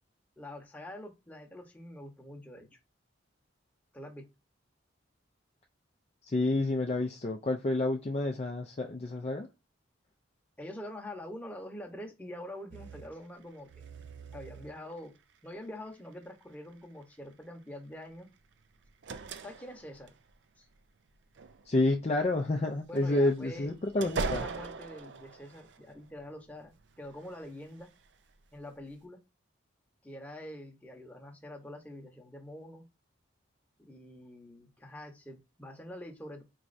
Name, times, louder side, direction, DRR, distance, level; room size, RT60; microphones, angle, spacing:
voice 1, 0.4-2.7 3.9-4.2 10.6-13.9 14.3-15.1 15.4-18.3 19.4-20.1 20.6-20.7 22.9-23.7 24.2-27.9 28.5-29.2 30.0-32.8 33.8-36.4, left 1 dB, 10° left, 0.9 m, -45 dB
voice 2, 6.3-9.5 21.7-24.4, left 2 dB, 30° left, 0.4 m, -29 dB
sound 1, 12.7-13.1 13.7-15.0 15.9-16.1 18.6-20.3 21.1-22.0 22.8-26.4 26.7-28.1 28.6-28.7, right 4 dB, 60° right, 0.4 m, -41 dB
4.6 x 3.1 x 2.6 m
head